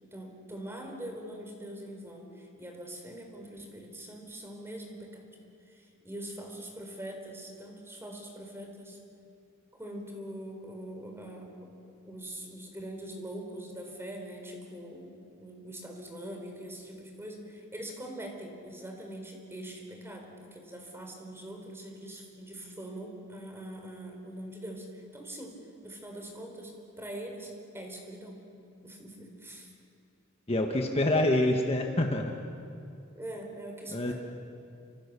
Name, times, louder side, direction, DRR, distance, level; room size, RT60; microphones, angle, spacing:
voice 1, 0.0-5.2 5.7-9.0 9.7-11.8 12.0-28.4 28.8-29.7 33.1-34.1, right 1 dB, 10° right, 2 dB, 4.3 m, -43 dB
voice 2, 30.5-32.4 33.9-34.1, left 1 dB, 30° left, 2 dB, 1.5 m, -26 dB
29.5 x 26.5 x 6.9 m, 2.5 s
head